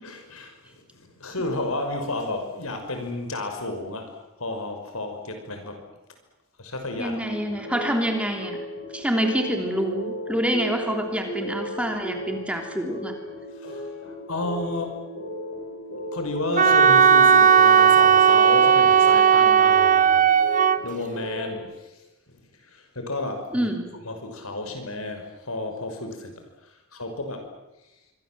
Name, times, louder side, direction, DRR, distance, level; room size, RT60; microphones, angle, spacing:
voice 1, 0.0-4.1 4.4-5.8 6.6-7.3 13.6-15.0 16.1-23.7 24.0-27.5, left 2 dB, 80° left, 5 dB, 5.9 m, -32 dB
voice 2, 7.0-8.6 8.9-13.1 23.5-24.0, equal, 5° right, 3 dB, 3.3 m, -27 dB
sound 1, 7.2-21.6, equal, 55° left, 7.5 m, -35 dB
Wind instrument woodwind instrument, 16.6-20.8, right 7 dB, 35° right, 0.9 m, -16 dB
25.5 x 24.5 x 7.8 m, 1.0 s
head